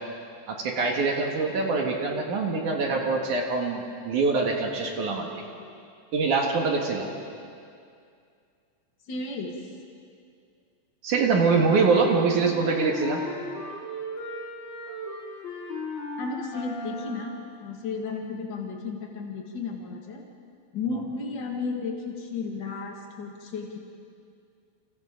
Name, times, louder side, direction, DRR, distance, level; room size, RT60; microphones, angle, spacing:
voice 1, 0.5-5.4 6.1-7.1 11.0-13.2 20.9-21.0, right 4 dB, 60° right, 1 dB, 2.3 m, -24 dB
voice 2, 9.1-9.5 16.2-20.2 20.7-23.8, left 4 dB, 75° left, 0 dB, 1.0 m, -33 dB
sound 1, 11.7-17.4, left 1 dB, 40° left, 6.5 m, -37 dB
28.5 x 27.0 x 3.9 m, 2.3 s
omnidirectional pair, 5.5 m